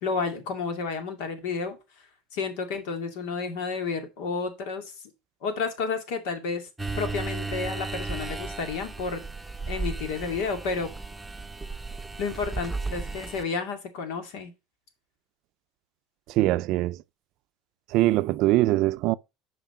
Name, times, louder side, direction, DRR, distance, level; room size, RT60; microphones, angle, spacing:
voice 1, 0.0-1.8 2.3-4.9 5.4-6.7 7.0-9.2 9.7-10.9 12.2-14.5, left 4 dB, 80° left, 2.3 m, -31 dB
sound 1, 6.8-13.4, right 3 dB, 5° right, 0.8 m, -34 dB
voice 2, 16.3-17.0 17.9-19.1, right 17 dB, 60° right, 0.4 m, -22 dB
7.5 x 5.0 x 6.0 m
supercardioid pair, 120°, 0 cm